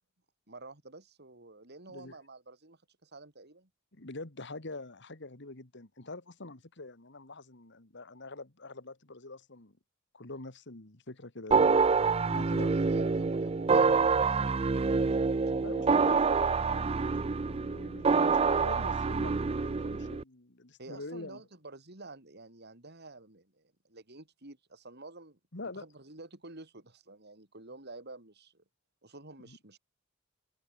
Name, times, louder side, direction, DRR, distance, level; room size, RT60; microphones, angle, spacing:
voice 1, 0.5-3.7 12.2-16.4 20.8-25.4 25.7-28.6 29.0-29.8, right 2 dB, 55° right, 4.3 m, -49 dB
voice 2, 3.9-9.8 10.1-11.8 12.3-12.7 15.6-21.4 25.5-25.8 29.4-29.6, left 2 dB, 60° left, 2.2 m, -45 dB
sound 1, 11.5-20.2, right 4 dB, 30° right, 0.4 m, -26 dB
head